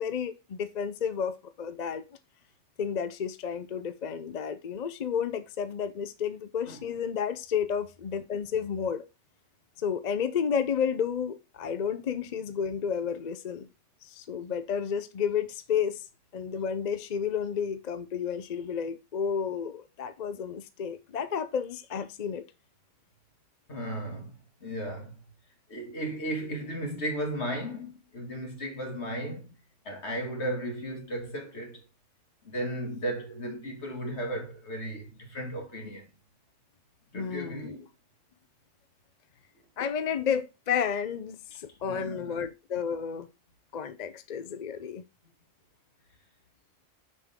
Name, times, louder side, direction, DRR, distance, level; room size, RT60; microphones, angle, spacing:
voice 1, 0.0-2.0 2.8-9.0 9.8-13.7 14.0-16.1 16.3-22.4 37.1-37.8 39.8-43.3 43.7-45.0, left 7 dB, 45° left, 0.6 m, -31 dB
voice 2, 23.7-25.1 25.7-29.5 29.8-31.8 32.4-36.1 37.1-37.8 41.8-42.5, right 1 dB, 65° left, 2.5 m, -35 dB
6.9 x 6.5 x 3.6 m
omnidirectional pair, 1.2 m